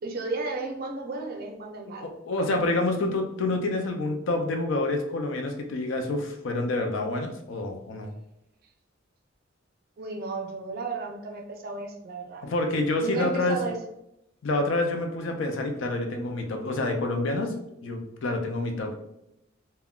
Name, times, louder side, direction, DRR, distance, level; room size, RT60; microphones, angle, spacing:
voice 1, 0.0-2.1 10.0-12.5 13.0-13.8, right 3 dB, 50° right, 3 dB, 0.5 m, -33 dB
voice 2, 2.2-8.1 12.4-13.6 14.4-17.5 17.8-19.0, left 2 dB, 70° left, 4 dB, 0.5 m, -27 dB
3.5 x 2.1 x 2.3 m, 0.82 s
head